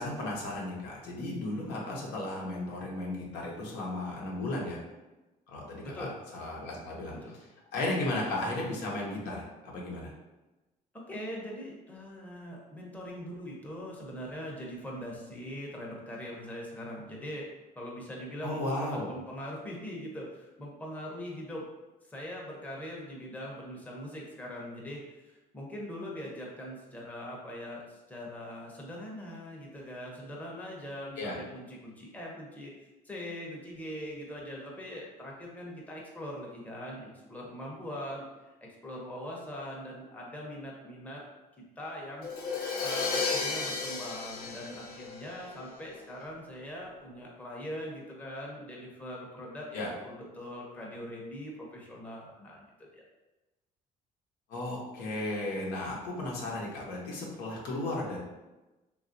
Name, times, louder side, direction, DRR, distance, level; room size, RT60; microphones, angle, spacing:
voice 1, 0.0-4.8 5.5-7.1 7.7-10.1 18.4-19.1 31.2-31.3 49.7-49.9 54.5-58.2, left 2 dB, 90° left, -3 dB, 0.8 m, -35 dB
voice 2, 5.8-6.2 7.1-7.4 11.1-17.5 17.8-21.7 22.1-32.7 33.0-38.2 38.6-41.2 41.6-42.3 42.8-52.6 52.9-53.0, equal, 10° left, -3 dB, 0.6 m, -42 dB
Crash cymbal, 42.2-46.0, left 4 dB, 65° left, 0.6 m, -33 dB
3.1 x 2.3 x 2.6 m, 1.1 s
cardioid pair, 110°, 17 cm